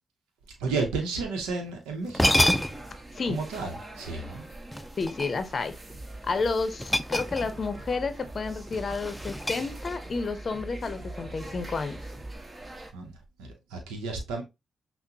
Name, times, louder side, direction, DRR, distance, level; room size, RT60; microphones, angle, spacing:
voice 1, 0.6-2.5 3.3-4.5 12.9-13.1 13.4-14.4, right 4 dB, 90° right, 0.7 m, -32 dB
sound 1, 1.7-1.8 2.1-3.0 4.7-5.6 6.8-7.8 8.0-8.2 8.7-10.2, left 1 dB, 5° left, 0.4 m, -28 dB
sound 2, 2.4-12.9, right 2 dB, 35° right, 1.1 m, -45 dB
voice 2, 5.0-5.8 6.2-12.0, left 4 dB, 50° left, 0.6 m, -30 dB
sound 3, 5.9-12.4, right 1 dB, 15° right, 1.4 m, -43 dB
5.8 x 2.0 x 2.7 m
supercardioid pair, 45°, 0 cm